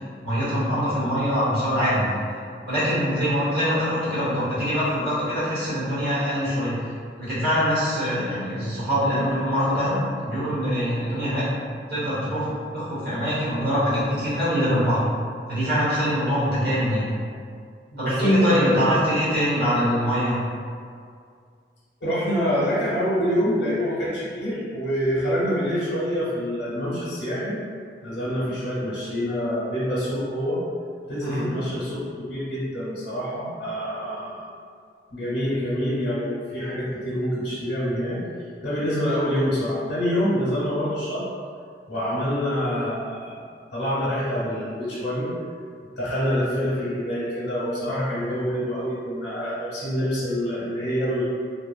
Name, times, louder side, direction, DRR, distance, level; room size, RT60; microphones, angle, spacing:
voice 1, 0.2-2.1 2.7-6.7 7.2-10.0 10.2-11.4 11.9-12.4 12.7-15.0 15.5-17.1 18.0-20.4 31.2-31.5, equal, 60° right, -11 dB, 1.2 m, -23 dB
voice 2, 17.9-18.6 22.0-27.6 28.0-30.6 31.1-34.5 35.1-38.2 38.6-41.2 41.9-43.4 43.7-45.3 46.0-51.2, equal, 80° left, -9 dB, 0.7 m, -26 dB
2.7 x 2.3 x 2.3 m, 2.2 s
head